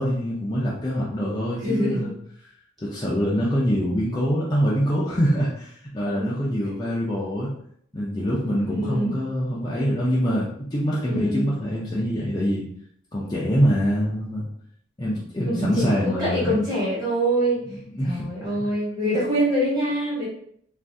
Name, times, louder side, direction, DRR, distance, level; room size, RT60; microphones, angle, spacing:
voice 1, 0.0-2.1 2.8-7.5 7.9-12.6 13.1-14.5 15.0-16.6 17.7-18.5, equal, 20° left, -6 dB, 0.4 m, -24 dB
voice 2, 1.6-2.1 6.2-6.3 6.6-6.7 8.7-9.1 11.0-11.5 15.5-17.8 18.0-20.3, right 1 dB, 20° right, -7 dB, 1.3 m, -25 dB
2.5 x 2.5 x 3.4 m, 0.66 s
head